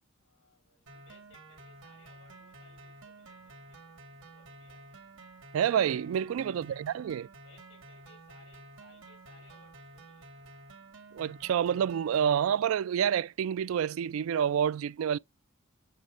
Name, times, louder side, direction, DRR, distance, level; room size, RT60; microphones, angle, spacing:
voice 1, 0.2-5.0 6.3-6.9 7.4-10.5, left 4 dB, 70° left, 4.5 m, -63 dB
sound 1, 0.9-12.4, right 2 dB, 70° right, 2.2 m, -51 dB
voice 2, 5.5-7.3 11.1-15.2, right 8 dB, 90° right, 0.3 m, -28 dB
7.4 x 5.1 x 3.3 m
head